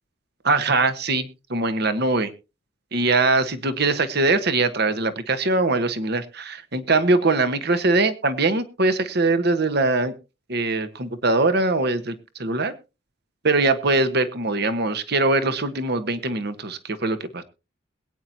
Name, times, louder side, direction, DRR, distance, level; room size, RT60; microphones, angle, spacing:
voice 1, 0.4-2.3 2.9-10.1 10.5-12.1 12.4-12.7 13.4-17.4, right 3 dB, 60° right, 10 dB, 1.2 m, -22 dB
21.5 x 9.2 x 2.8 m, 0.29 s
head